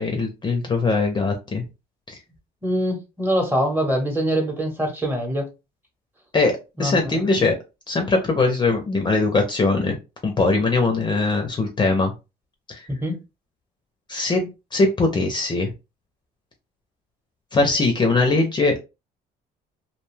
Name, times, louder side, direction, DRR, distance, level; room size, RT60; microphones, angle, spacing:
voice 1, 0.0-1.7 2.1-2.2 6.3-7.6 7.9-10.0 10.2-12.1 12.7-12.9 14.1-15.7 17.5-18.8, left 3 dB, 25° left, 0.6 m, -21 dB
voice 2, 2.6-5.5 6.8-7.1 12.9-13.2, equal, 10° right, 0.9 m, -24 dB
2.5 x 2.2 x 3.1 m
cardioid pair, 110°, 17 cm